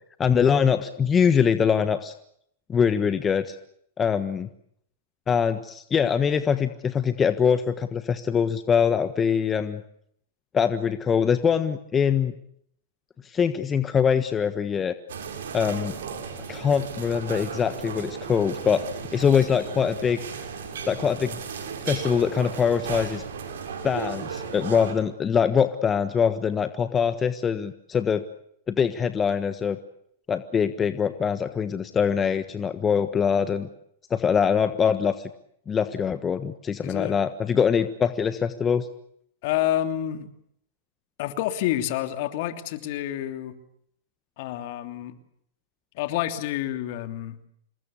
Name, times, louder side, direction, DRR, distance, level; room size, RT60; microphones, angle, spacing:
voice 1, 0.2-2.1 2.7-3.6 4.0-4.5 5.3-9.8 10.5-12.3 13.2-14.9 15.5-16.0 16.5-18.8 19.1-20.2 20.9-21.4 21.8-23.2 23.8-28.2 28.7-29.8 30.3-33.7 34.1-35.3 35.7-38.9, left 7 dB, 20° left, 11 dB, 1.4 m, -23 dB
sound 1, 15.1-24.9, right 6 dB, 75° right, 6.1 m, -35 dB
voice 2, 36.8-37.2 39.4-40.3 41.2-43.6 44.4-45.2 45.9-47.4, left 13 dB, 55° left, 8 dB, 3.0 m, -28 dB
27.0 x 21.0 x 8.4 m, 0.70 s
hypercardioid pair, 110°, 0 cm